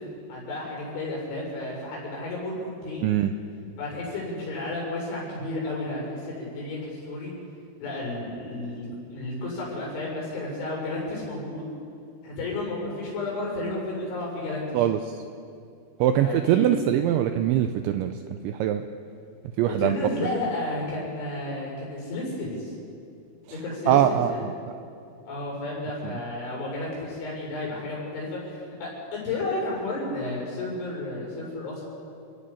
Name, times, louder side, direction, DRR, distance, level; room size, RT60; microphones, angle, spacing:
voice 1, 0.3-3.2 3.8-7.3 7.8-11.6 12.2-14.8 16.1-16.7 19.8-22.7 23.5-24.5 25.3-31.8, left 2 dB, 65° left, -4 dB, 8.8 m, -32 dB
voice 2, 3.0-3.3 14.7-15.2 16.0-18.1 18.4-18.8 19.6-20.0 23.9-24.5 26.0-26.1, right 11 dB, 80° right, 8 dB, 2.7 m, -22 dB
29.5 x 19.0 x 5.7 m, 2.4 s
omnidirectional pair, 6.0 m